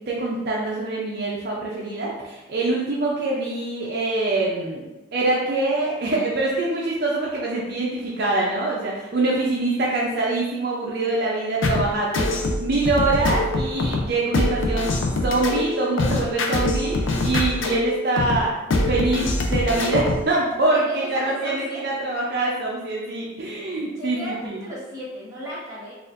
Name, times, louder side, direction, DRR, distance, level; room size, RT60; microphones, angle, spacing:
voice 1, 0.0-4.8 5.1-12.3 12.6-18.6 18.9-24.6, right 2 dB, 50° right, -4 dB, 0.5 m, -24 dB
sound 1, 11.6-20.3, left 2 dB, 80° left, 0.5 m, -24 dB
voice 2, 20.7-21.8 23.9-25.9, right 1 dB, 15° right, -9 dB, 1.1 m, -34 dB
4.0 x 2.4 x 2.5 m, 1.1 s
head